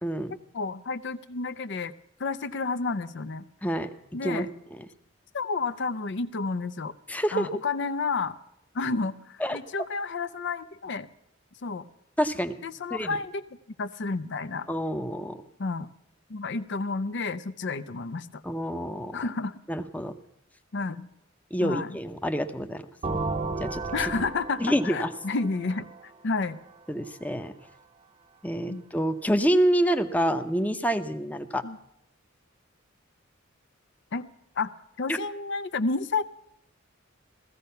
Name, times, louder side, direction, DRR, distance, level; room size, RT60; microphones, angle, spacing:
voice 1, 0.0-0.4 3.6-3.9 4.2-4.5 7.1-7.5 9.4-9.6 12.2-12.6 12.9-13.1 14.7-15.4 18.4-19.2 19.7-20.1 21.5-22.9 23.6-23.8 24.6-25.1 26.9-27.5 28.4-31.6 35.1-35.2, equal, 10° left, 8 dB, 0.8 m, -27 dB
voice 2, 0.5-1.9 2.2-3.4 4.1-4.5 5.3-6.9 7.3-8.4 8.7-11.1 11.6-11.8 12.6-13.4 13.8-14.7 15.6-15.9 16.3-18.4 19.1-19.5 20.7-21.1 21.6-22.0 23.9-26.6 28.7-28.8 31.6-31.8 34.1-34.3 34.6-36.2, left 4 dB, 60° left, 12 dB, 0.6 m, -31 dB
sound 1, 23.0-26.7, right 3 dB, 30° right, 0.8 m, -34 dB
16.0 x 14.5 x 5.7 m, 0.78 s
head